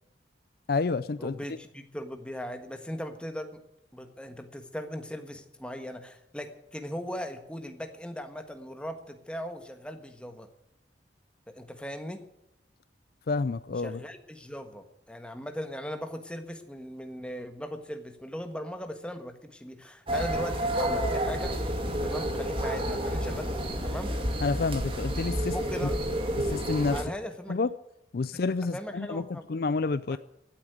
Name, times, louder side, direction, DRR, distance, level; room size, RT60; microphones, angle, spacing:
voice 1, 0.7-1.4 13.3-14.0 24.4-25.6 25.8-25.9 26.4-27.0 27.5-27.7 28.1-30.2, left 4 dB, 55° left, 0.4 m, -29 dB
voice 2, 1.2-3.6 3.9-10.5 11.5-12.3 13.8-21.6 22.0-24.2 25.5-26.1 26.9-27.6 28.7-29.5 30.1-30.2, equal, 5° left, 1.4 m, -39 dB
sound 1, 20.1-27.0, equal, 30° right, 2.3 m, -30 dB
16.0 x 8.5 x 9.3 m
head